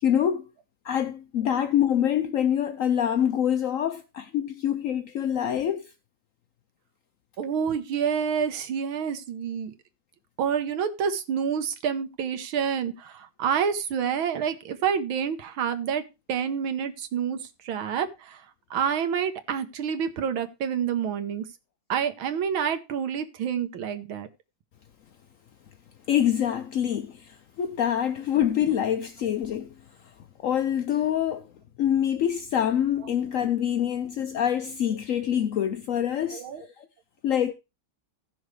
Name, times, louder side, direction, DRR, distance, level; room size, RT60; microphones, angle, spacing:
voice 1, 0.0-0.5 0.8-5.9 26.1-29.7 30.4-31.5 31.8-36.5 36.8-36.9 37.2-37.5, left 10 dB, 75° left, 0.7 m, -25 dB
voice 2, 7.4-9.7 10.4-16.0 16.3-17.4 17.6-18.4 18.7-21.4 21.9-24.3 33.2-33.4 36.3-36.6, right 7 dB, 80° right, 1.9 m, -28 dB
16.5 x 6.3 x 3.2 m
omnidirectional pair, 2.2 m